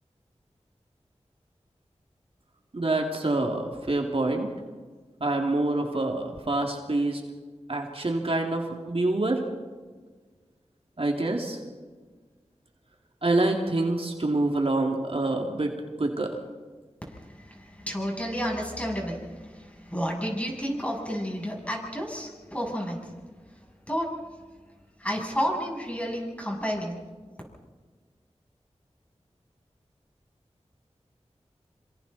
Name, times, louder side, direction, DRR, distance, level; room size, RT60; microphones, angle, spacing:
voice 1, 2.7-4.5 5.2-7.2 7.7-9.4 11.0-11.6 13.2-15.7 16.0-16.4, right 2 dB, 55° right, 1 dB, 2.5 m, -26 dB
voice 2, 17.1-23.1 23.9-24.1 25.0-27.0, equal, 10° left, -1 dB, 7.6 m, -31 dB
26.5 x 26.0 x 4.1 m, 1.4 s
wide cardioid pair, 45°, 12 cm